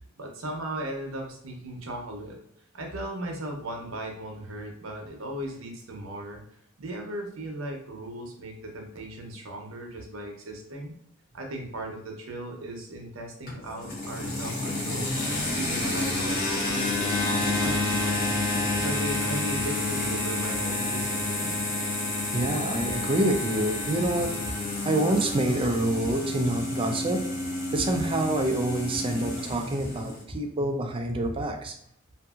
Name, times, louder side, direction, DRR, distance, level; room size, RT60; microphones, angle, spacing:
voice 1, 0.2-2.4 2.7-6.4 6.8-10.9 11.3-15.1 15.5-18.4 18.7-21.6, right 1 dB, 85° right, 2 dB, 0.7 m, -37 dB
sound 1, 13.5-30.2, left 2 dB, 45° left, 1.0 m, -29 dB
voice 2, 22.3-24.5 24.8-27.2 27.7-31.7, right 1 dB, 25° right, 3 dB, 0.4 m, -27 dB
2.7 x 2.6 x 2.3 m, 0.69 s
head